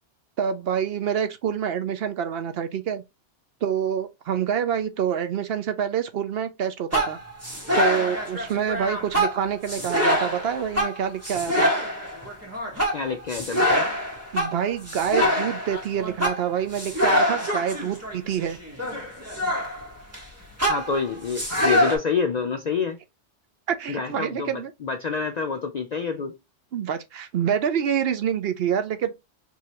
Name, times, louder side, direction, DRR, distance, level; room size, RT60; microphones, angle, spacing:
voice 1, 0.4-3.0 3.6-7.2 7.7-11.7 14.3-18.6 23.7-24.7 26.7-29.1, right 8 dB, 65° right, 0.8 m, -27 dB
sound 1, 6.9-20.2 20.6-22.0, equal, 15° right, 1.3 m, -25 dB
voice 2, 12.9-13.9 20.7-23.0 23.9-26.4, left 5 dB, 60° left, 0.4 m, -27 dB
4.8 x 2.7 x 2.9 m
omnidirectional pair, 1.2 m